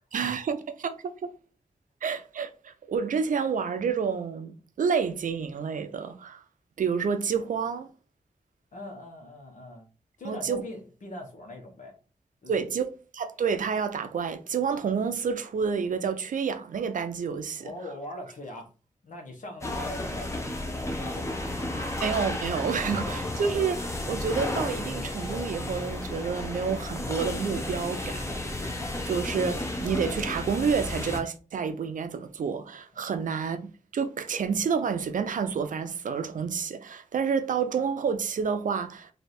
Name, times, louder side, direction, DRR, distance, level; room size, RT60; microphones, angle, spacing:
voice 1, 0.1-0.9 1.2-1.3 2.0-6.4 6.8-7.9 10.2-10.6 12.5-12.9 13.1-17.7 22.0-28.7 29.0-39.1, right 6 dB, 85° right, 0.5 m, -29 dB
voice 2, 8.7-9.9 10.2-12.0 12.4-12.7 17.5-18.7 19.0-21.5, left 1 dB, 80° left, 1.2 m, -41 dB
sound 1, 19.6-31.2, left 1 dB, 20° left, 0.8 m, -33 dB
3.3 x 2.7 x 4.2 m
wide cardioid pair, 125°, 13 cm